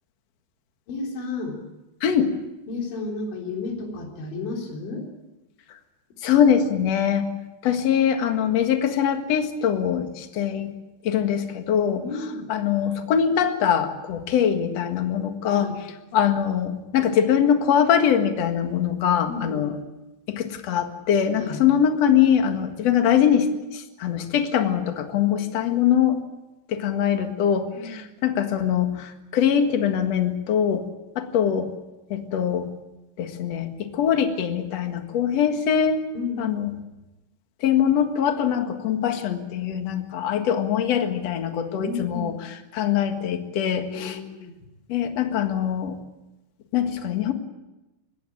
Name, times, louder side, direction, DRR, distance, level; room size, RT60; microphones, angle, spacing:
voice 1, 0.9-1.6 2.7-5.1 12.0-12.5 15.5-15.8 19.3-19.7 21.3-21.6 27.7-28.0 36.1-36.8 41.8-42.4 43.9-44.7, left 3 dB, 85° left, 1 dB, 6.0 m, -32 dB
voice 2, 2.0-2.4 6.2-7.3 7.6-10.7 11.0-12.0 12.5-15.7 16.1-19.7 20.3-26.2 26.7-30.8 31.2-31.7 32.1-32.7 33.2-36.1 36.4-36.7 37.6-42.3 42.7-44.2 44.9-46.0 46.7-47.3, left 8 dB, 50° left, 6 dB, 2.1 m, -22 dB
22.5 x 18.0 x 8.6 m, 1.0 s
omnidirectional pair, 5.1 m